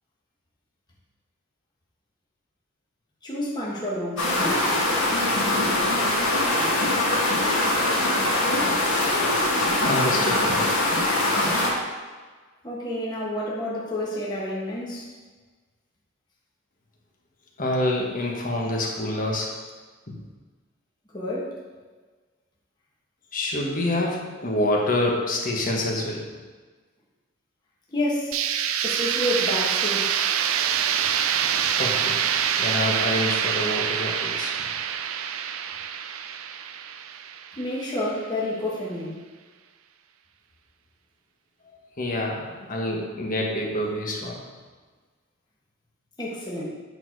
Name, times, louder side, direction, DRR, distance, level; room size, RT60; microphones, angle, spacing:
voice 1, 3.2-4.7 12.6-15.1 21.1-21.6 27.9-28.4 28.8-30.2 37.5-39.2 46.2-46.6, left 1 dB, 20° left, -6 dB, 1.5 m, -29 dB
sound 1, 4.2-11.7, left 1 dB, 85° left, 1.9 m, -22 dB
voice 2, 9.8-10.6 17.6-19.5 20.1-20.2 23.3-26.2 31.8-32.2 32.6-34.7 42.0-44.4, left 1 dB, 40° left, -1 dB, 1.4 m, -27 dB
sound 2, 28.3-38.1, right 8 dB, 75° right, 0.4 m, -26 dB
8.8 x 4.3 x 4.7 m, 1.4 s
head